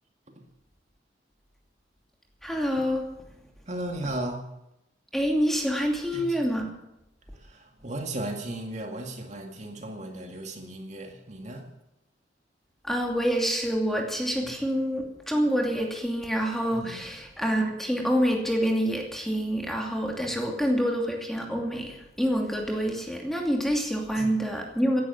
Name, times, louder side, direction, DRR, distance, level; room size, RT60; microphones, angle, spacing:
voice 1, 2.4-3.1 5.1-6.7 12.8-25.0, equal, ahead, 1 dB, 2.6 m, -27 dB
voice 2, 3.7-4.4 6.1-6.4 7.3-11.7 14.4-14.5 16.7-17.1 20.2-20.4 24.2-24.4, right 1 dB, 40° right, 3 dB, 2.2 m, -36 dB
17.5 x 11.0 x 7.2 m, 0.87 s
head